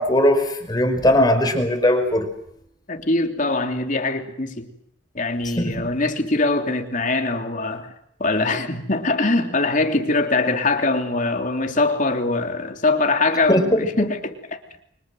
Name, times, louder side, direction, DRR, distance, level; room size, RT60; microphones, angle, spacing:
voice 1, 0.0-2.3 5.6-5.8 13.5-13.8, left 1 dB, 20° left, 5.2 m, -19 dB
voice 2, 2.9-4.7 5.1-7.9 8.2-14.4, left 3 dB, 45° left, 3.2 m, -22 dB
29.5 x 24.5 x 7.9 m
head